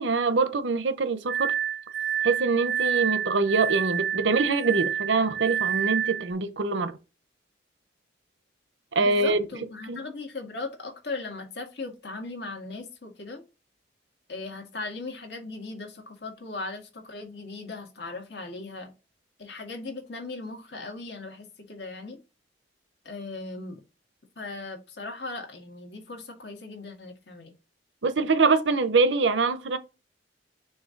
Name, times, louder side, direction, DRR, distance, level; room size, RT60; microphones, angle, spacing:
voice 1, 0.0-1.5 2.2-6.9 8.9-9.4 9.9-10.0 28.0-29.8, right 4 dB, 85° right, 0.8 m, -24 dB
Glass, 1.3-6.3, right 9 dB, 60° right, 0.4 m, -28 dB
voice 2, 9.0-13.4 14.3-18.9 19.4-22.2 23.1-23.8 24.4-27.5, left 3 dB, 65° left, 1.8 m, -38 dB
6.5 x 2.8 x 5.1 m
head